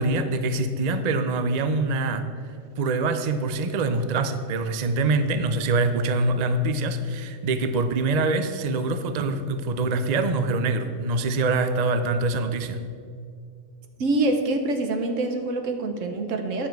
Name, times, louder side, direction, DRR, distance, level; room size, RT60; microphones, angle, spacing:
voice 1, 0.0-2.3 2.8-12.8, right 3 dB, 55° right, 8 dB, 0.4 m, -24 dB
voice 2, 14.0-16.7, right 2 dB, 70° right, 5 dB, 1.3 m, -25 dB
9.8 x 7.0 x 4.6 m, 2.3 s
omnidirectional pair, 1.4 m